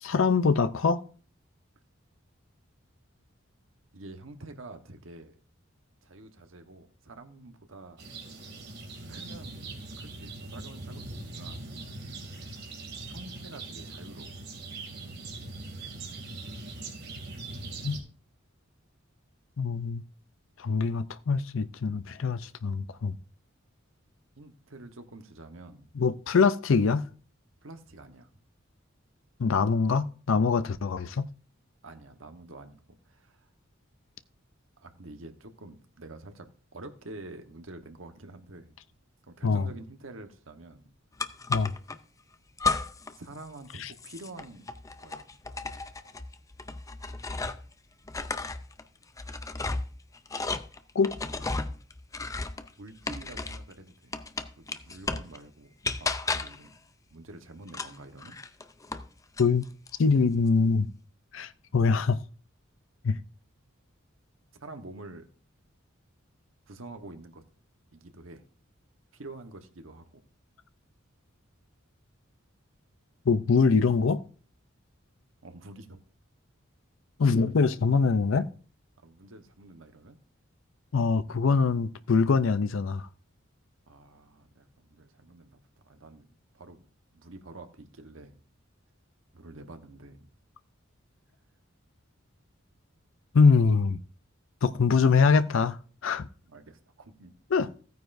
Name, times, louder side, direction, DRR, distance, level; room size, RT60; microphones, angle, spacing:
voice 1, 0.0-1.0 17.8-18.0 19.6-20.0 20.6-23.1 26.0-27.1 29.4-31.3 39.4-39.6 41.5-41.7 43.8-43.9 51.0-51.1 59.4-59.6 60.0-60.9 61.3-62.2 63.0-63.2 73.3-74.2 77.2-78.5 80.9-83.1 93.3-94.0 94.6-95.8 96.0-96.3 97.5-97.7, left 5 dB, 70° left, 0.5 m, -23 dB
voice 2, 3.9-5.4 6.0-8.0 9.1-9.7 10.0-11.8 13.1-14.4 24.4-25.9 27.6-28.3 31.8-33.5 34.8-38.8 39.3-40.9 43.2-44.7 45.0-45.3 52.8-54.1 54.6-56.7 57.1-58.4 64.5-65.2 66.7-67.4 67.9-68.4 69.1-70.2 75.4-76.0 79.0-80.2 83.9-85.6 85.8-86.3 86.5-86.8 87.1-88.4 89.3-90.3 93.6-93.7 96.5-97.3, right 2 dB, 75° right, 1.2 m, -47 dB
sound 1, 8.0-18.0, right 2 dB, 55° right, 2.6 m, -41 dB
sound 2, 41.2-42.0 42.6-43.2 43.4-47.7 48.0-53.7 54.1-55.4 55.8-56.7 57.7-59.1 59.4-60.0, left 3 dB, 15° left, 0.5 m, -34 dB
15.0 x 9.3 x 2.6 m
head